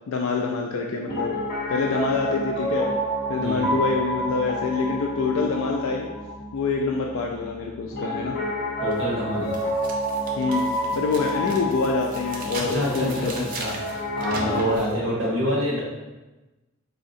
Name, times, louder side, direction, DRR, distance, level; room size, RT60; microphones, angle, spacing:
voice 1, 0.1-1.3 1.7-2.9 3.3-6.1 6.5-8.4 10.4-13.3 14.4-14.7, left 4 dB, 85° left, 0 dB, 0.3 m, -26 dB
Piano, 1.1-14.8, equal, 55° left, 0.8 m, -29 dB
voice 2, 8.8-9.5 12.5-15.8, equal, 70° right, -4 dB, 1.1 m, -27 dB
sound 1, 8.9-9.0 9.5-14.9, right 2 dB, 45° right, 0.5 m, -38 dB
4.1 x 2.8 x 2.6 m, 1.1 s
head